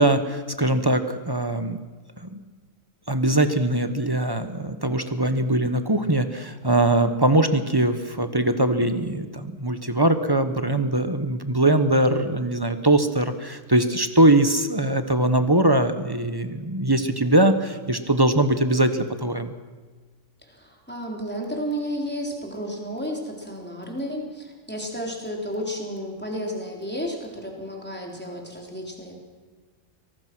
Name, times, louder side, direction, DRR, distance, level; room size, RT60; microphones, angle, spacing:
voice 1, 0.0-1.8 2.2-2.4 3.1-19.5, right 1 dB, 20° right, 9 dB, 1.1 m, -21 dB
voice 2, 20.4-29.2, equal, 5° left, 0 dB, 3.9 m, -32 dB
24.0 x 19.0 x 6.1 m, 1.4 s
omnidirectional pair, 1.4 m